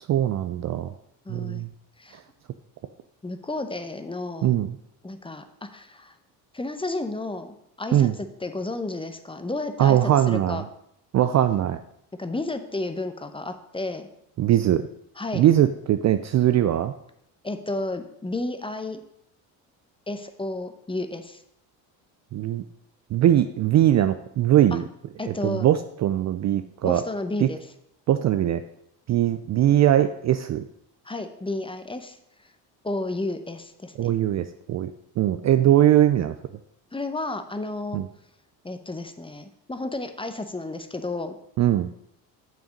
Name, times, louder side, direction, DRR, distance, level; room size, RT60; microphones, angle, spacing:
voice 1, 0.1-0.9 1.3-1.7 4.4-4.7 7.9-8.1 9.8-10.6 11.1-11.8 14.4-14.8 15.3-16.9 22.3-22.6 23.1-24.8 25.3-27.0 27.4-27.5 28.1-28.6 29.1-30.7 34.0-36.3 37.9-38.1 41.6-41.9, right 12 dB, 40° right, 10 dB, 0.4 m, -21 dB
voice 2, 1.3-1.7 2.0-2.2 3.2-4.6 5.0-6.2 6.5-10.6 12.2-14.1 15.2-15.4 17.4-19.0 20.1-21.4 24.7-24.8 25.2-25.7 26.8-27.6 31.0-32.2 32.8-34.1 36.9-38.0 38.6-41.4, left 2 dB, 10° left, 9 dB, 0.8 m, -32 dB
7.1 x 5.9 x 5.1 m, 0.76 s
hypercardioid pair, 70°, 47 cm